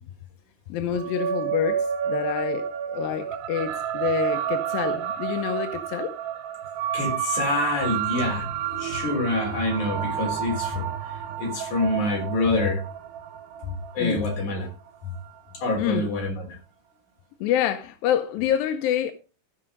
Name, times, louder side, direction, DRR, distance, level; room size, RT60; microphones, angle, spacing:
voice 1, 0.7-6.2 13.7-14.2 15.8-16.0 17.4-19.1, left 10 dB, 80° left, 2.2 m, -27 dB
sound 1, 0.9-15.6, right 9 dB, 85° right, 3.2 m, -30 dB
voice 2, 6.9-8.5 8.8-12.8 13.6-14.7 15.0-15.1 15.5-16.6, left 2 dB, 45° left, 4.8 m, -26 dB
15.5 x 5.3 x 5.1 m
omnidirectional pair, 4.7 m